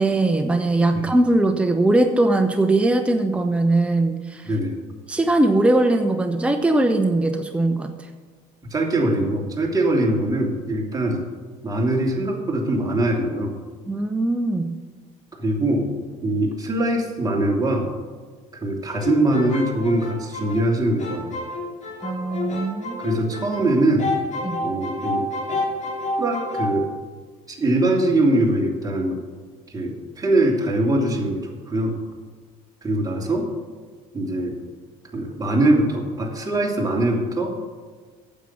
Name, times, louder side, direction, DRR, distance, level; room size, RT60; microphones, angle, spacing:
voice 1, 0.0-4.5 5.1-7.9 13.9-14.7 22.0-23.1 24.4-24.7, right 2 dB, 5° right, 5 dB, 0.9 m, -20 dB
voice 2, 4.4-4.7 8.7-11.2 11.6-13.6 15.3-15.9 16.2-17.9 18.5-21.3 23.0-24.1 24.6-25.3 26.2-26.9 27.5-29.2 29.7-31.9 32.8-33.5 34.1-34.6 35.1-37.5, right 1 dB, 20° right, -1 dB, 2.9 m, -22 dB
sound 1, 18.9-23.7 24.0-26.8, left 2 dB, 45° left, 3.0 m, -29 dB
9.2 x 7.7 x 8.7 m, 1.5 s
supercardioid pair, 85°, 16 cm